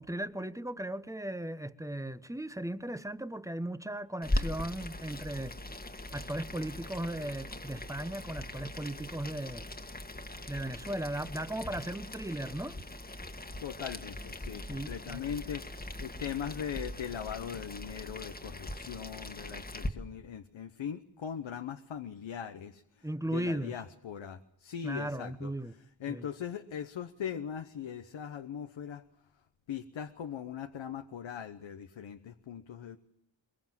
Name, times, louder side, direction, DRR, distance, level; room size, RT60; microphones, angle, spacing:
voice 1, 0.0-5.6 6.1-9.7 10.5-12.8 14.7-15.2 23.0-23.7 24.8-25.7 26.1-26.3, right 1 dB, 5° right, 1.1 m, -37 dB
Boiling, 4.2-19.9, left 1 dB, 20° left, 1.7 m, -40 dB
voice 2, 13.6-23.1 23.3-25.5 26.0-29.0 29.7-33.0, left 8 dB, 85° left, 1.1 m, -40 dB
23.0 x 22.0 x 7.5 m
cardioid pair, 75°, 45 cm